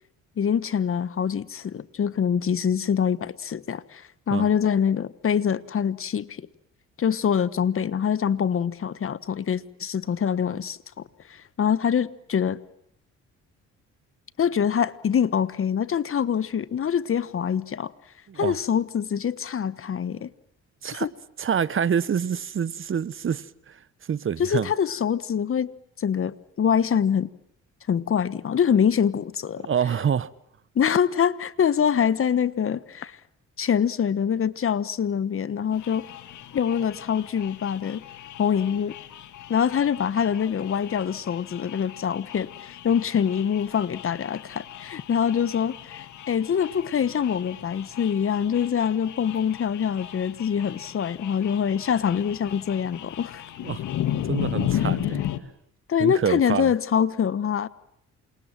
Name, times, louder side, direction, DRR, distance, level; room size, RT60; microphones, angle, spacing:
voice 1, 0.4-6.5 7.0-10.8 11.3-12.6 14.4-17.9 18.4-20.3 20.9-21.1 24.4-25.7 26.0-27.3 27.9-29.7 30.7-33.2 33.6-36.1 36.5-38.0 38.4-39.0 39.5-53.4 55.9-57.7, left 8 dB, 45° left, 1.2 m, -24 dB
voice 2, 18.3-18.6 20.8-21.1 21.4-23.8 24.1-24.7 29.6-30.3 53.6-53.8 54.2-55.2 56.0-56.7, right 7 dB, 45° right, 1.1 m, -26 dB
sound 1, 35.7-55.4, left 11 dB, 75° left, 2.1 m, -35 dB
28.0 x 27.0 x 7.5 m
cardioid pair, 90°, 30 cm